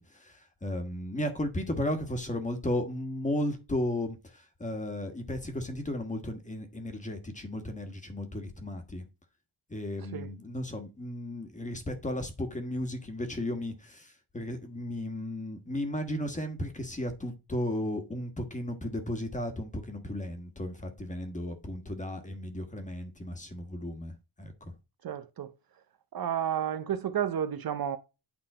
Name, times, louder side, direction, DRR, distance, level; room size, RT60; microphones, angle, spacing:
voice 1, 0.0-9.1 9.7-24.7, left 1 dB, 15° left, 1.4 m, -35 dB
voice 2, 25.0-25.5 26.1-28.0, right 9 dB, 50° right, 0.7 m, -31 dB
9.2 x 3.7 x 4.8 m
wide cardioid pair, 165°, 45 cm